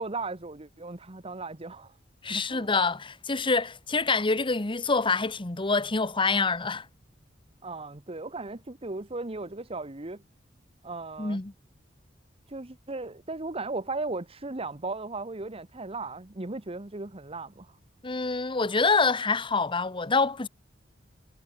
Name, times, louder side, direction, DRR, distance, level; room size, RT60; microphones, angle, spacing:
voice 1, 0.0-1.9 2.3-2.7 7.6-10.2 10.8-11.4 12.5-17.8, right 3 dB, 30° right, 1.3 m, -36 dB
voice 2, 2.2-6.9 11.2-11.5 18.0-20.5, left 4 dB, 25° left, 1.2 m, -26 dB
head